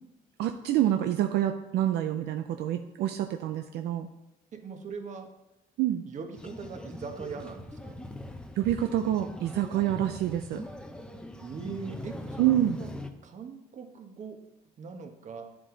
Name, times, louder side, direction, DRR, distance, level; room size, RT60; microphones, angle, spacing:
voice 1, 0.4-4.1 5.8-6.0 8.6-10.7 12.4-12.8, right 12 dB, 75° right, 6 dB, 0.6 m, -27 dB
voice 2, 4.5-5.3 6.1-8.0 11.4-12.9 13.2-14.4 14.8-15.5, right 5 dB, 45° right, 5 dB, 1.4 m, -41 dB
sound 1, 6.4-13.1, left 1 dB, 5° left, 0.8 m, -42 dB
10.5 x 7.8 x 3.9 m, 0.95 s
cardioid pair, 110°, 17 cm